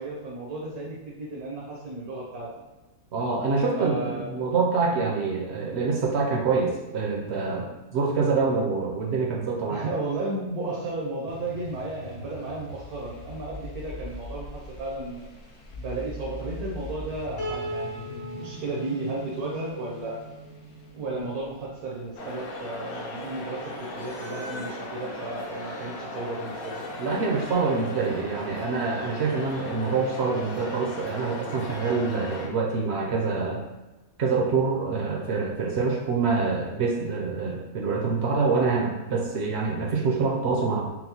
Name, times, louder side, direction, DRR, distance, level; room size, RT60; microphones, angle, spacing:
voice 1, 0.0-2.6 3.7-4.4 4.9-5.1 9.7-15.2 15.7-20.2 20.9-26.8, right 2 dB, 85° right, -4 dB, 1.3 m, -34 dB
voice 2, 3.1-9.8 27.0-33.7 34.2-40.9, right 4 dB, 65° right, -1 dB, 0.7 m, -26 dB
sound 1, 11.3-23.7, left 1 dB, 85° left, 1.2 m, -42 dB
Piano, 17.4-20.6, right 1 dB, 50° left, 1.1 m, -38 dB
sound 2, 22.2-32.5, left 1 dB, 65° left, 0.5 m, -37 dB
5.9 x 2.0 x 2.8 m, 1.1 s
omnidirectional pair, 1.5 m